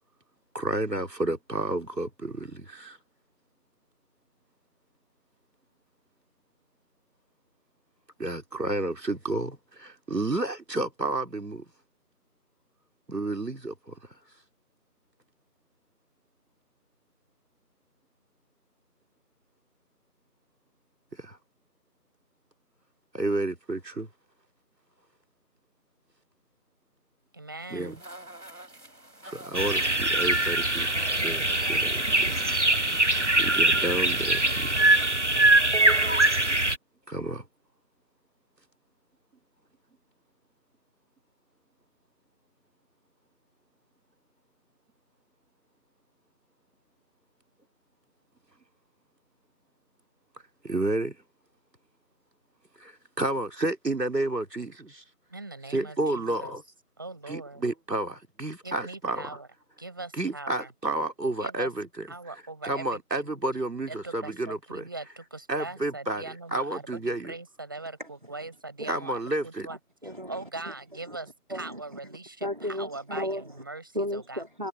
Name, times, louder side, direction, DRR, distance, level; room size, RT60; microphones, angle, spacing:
voice 1, 0.5-3.0 8.2-11.7 13.1-14.0 21.1-21.4 23.1-24.1 27.7-28.0 29.2-32.4 33.4-35.2 37.1-37.4 50.6-51.2 52.8-55.0 55.7-56.6 57.3-59.4 60.2-62.1 62.6-64.8 65.5-67.3 68.9-69.7, right 2 dB, 90° right, 2.5 m, -31 dB
voice 2, 27.3-28.0 55.3-56.6 57.0-57.7 58.6-59.5 59.8-60.7 61.4-61.7 62.1-63.2 63.9-69.1 69.4-69.8 70.3-71.3 71.5-72.5 72.8-74.4, right 2 dB, 15° right, 5.1 m, -41 dB
sound 1, 27.6-35.0, right 1 dB, 70° right, 6.5 m, -47 dB
sound 2, 29.5-36.8, right 2 dB, 45° right, 0.9 m, -23 dB
voice 3, 69.7-70.7 71.1-71.2 71.5-72.0 72.4-73.6 73.9-74.7, left 1 dB, 30° right, 2.2 m, -35 dB
figure-of-eight pair, 175°, 47 cm